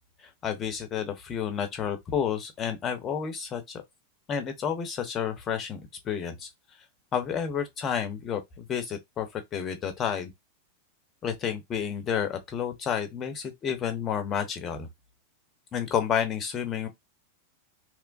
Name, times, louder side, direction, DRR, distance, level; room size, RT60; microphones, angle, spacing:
voice 1, 0.4-3.8 4.3-6.5 7.1-10.3 11.2-14.9 15.7-16.9, left 8 dB, 30° left, 0.8 m, -30 dB
3.1 x 2.2 x 2.5 m
figure-of-eight pair, 90°, 0 cm